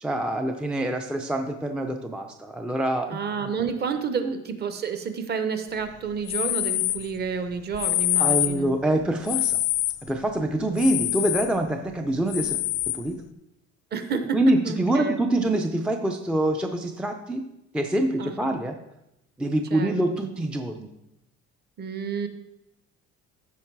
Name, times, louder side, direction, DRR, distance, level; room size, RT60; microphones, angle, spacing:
voice 1, 0.0-3.5 4.2-4.3 8.2-9.6 10.1-12.6 12.9-13.2 14.3-17.4 17.7-18.8 19.4-20.9, right 1 dB, 5° right, 4 dB, 0.4 m, -25 dB
voice 2, 3.1-8.8 13.9-14.4 14.6-15.2 18.2-18.6 19.7-20.2 21.8-22.3, right 6 dB, 35° right, 9 dB, 0.8 m, -30 dB
sound 1, 6.3-7.1 7.7-8.6 9.3-10.0 10.8-11.5 12.3-13.0, left 16 dB, 85° left, 0.6 m, -25 dB
14.5 x 5.2 x 4.6 m, 0.86 s
cardioid pair, 175°, 30 cm